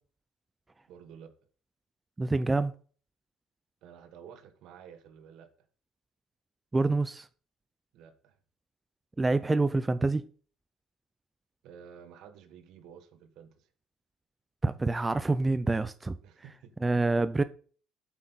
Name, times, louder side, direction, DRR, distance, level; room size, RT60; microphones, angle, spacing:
voice 1, 0.9-1.3 3.8-5.5 7.9-8.4 11.6-13.7 16.2-16.7, right 8 dB, 70° right, 1.5 m, -51 dB
voice 2, 2.2-2.7 6.7-7.3 9.2-10.2 14.6-16.2 16.8-17.4, right 3 dB, 20° right, 0.5 m, -26 dB
8.8 x 7.4 x 4.1 m
supercardioid pair, 75°, 0 cm